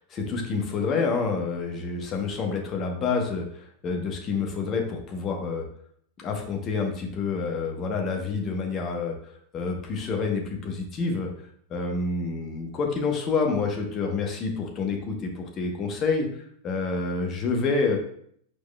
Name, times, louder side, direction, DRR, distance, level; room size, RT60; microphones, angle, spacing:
voice 1, 0.1-5.7 6.2-11.3 11.7-16.3 16.6-18.0, left 4 dB, 30° left, 2 dB, 0.9 m, -28 dB
4.9 x 3.9 x 2.2 m, 0.64 s
figure-of-eight pair, 90°, 0 cm